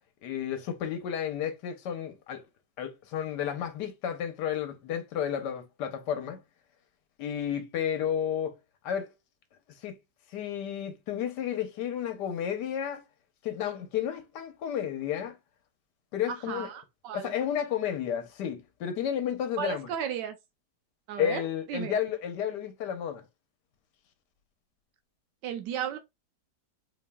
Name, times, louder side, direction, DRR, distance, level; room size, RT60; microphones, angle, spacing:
voice 1, 0.2-2.4 2.8-6.4 7.2-8.6 8.8-9.1 9.8-10.0 10.3-13.0 13.4-15.4 16.1-16.7 17.1-19.9 21.2-23.2, left 9 dB, 75° left, 1.4 m, -32 dB
voice 2, 16.3-17.3 19.6-20.4 21.1-22.0 25.4-26.0, right 9 dB, 85° right, 1.3 m, -35 dB
4.3 x 3.1 x 2.2 m
omnidirectional pair, 1.8 m